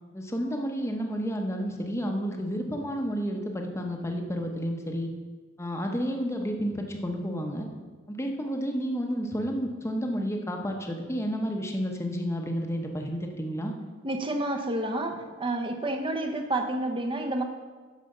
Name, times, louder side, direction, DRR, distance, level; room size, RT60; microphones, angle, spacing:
voice 1, 0.1-5.1 5.6-7.7 8.1-13.7, equal, 15° left, 2 dB, 0.9 m, -31 dB
voice 2, 14.0-17.4, right 1 dB, 25° right, 5 dB, 0.8 m, -29 dB
10.5 x 5.0 x 6.5 m, 1.4 s
head